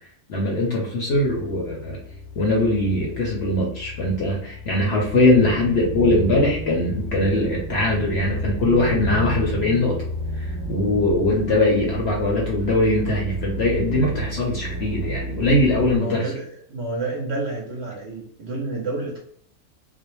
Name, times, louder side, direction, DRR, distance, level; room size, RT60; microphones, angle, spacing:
voice 1, 0.3-2.0 2.4-10.0 10.4-16.3, left 1 dB, 60° left, -2 dB, 0.7 m, -21 dB
sound 1, 1.1-16.0, equal, 85° left, 1.1 m, -31 dB
voice 2, 5.0-5.3 11.5-11.6 16.0-19.2, right 2 dB, 60° right, -2 dB, 0.7 m, -30 dB
2.5 x 2.0 x 2.9 m, 0.66 s
omnidirectional pair, 1.5 m